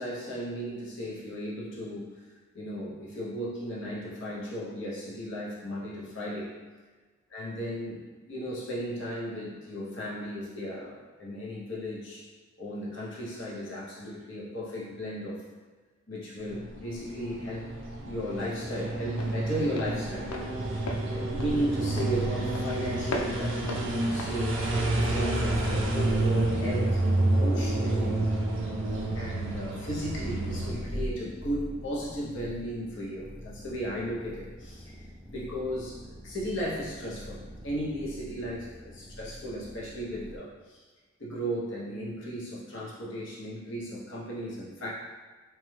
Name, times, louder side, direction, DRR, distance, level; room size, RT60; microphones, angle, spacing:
voice 1, 0.0-2.2 2.5-6.6 7.3-8.0 8.3-12.2 12.6-15.4 16.1-17.7 18.0-20.3 20.7-24.6 24.9-28.2 29.1-35.0 35.3-36.0 36.2-40.8 41.2-44.9, equal, 65° left, -6 dB, 0.7 m, -35 dB
sound 1, 16.4-30.7, right 2 dB, 65° right, 0.5 m, -29 dB
Walk footsteps, 16.9-25.6, left 2 dB, 90° left, 0.4 m, -40 dB
sound 2, 21.0-40.4, equal, 10° right, 0.3 m, -44 dB
3.0 x 2.2 x 3.1 m, 1.3 s
head